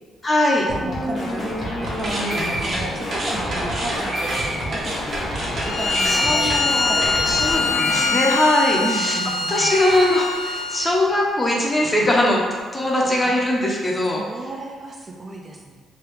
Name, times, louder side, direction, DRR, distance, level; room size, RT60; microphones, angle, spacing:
voice 1, 0.2-0.7 6.1-6.9 7.3-9.2 9.5-12.4 12.7-14.2, left 1 dB, 25° left, -2 dB, 0.6 m, -20 dB
sound 1, 0.7-8.1, left 1 dB, 50° left, 0.8 m, -29 dB
voice 2, 0.7-6.5 6.9-8.0 8.8-9.7 13.2-13.4 14.2-15.7, right 2 dB, 30° right, 0 dB, 0.4 m, -33 dB
sound 2, 1.9-9.2 9.5-10.7, right 1 dB, 50° right, 0.8 m, -29 dB
Bowed string instrument, 5.6-11.0, left 4 dB, 70° left, 0.5 m, -23 dB
3.3 x 2.3 x 3.1 m, 1.5 s
cardioid pair, 90°, 0 cm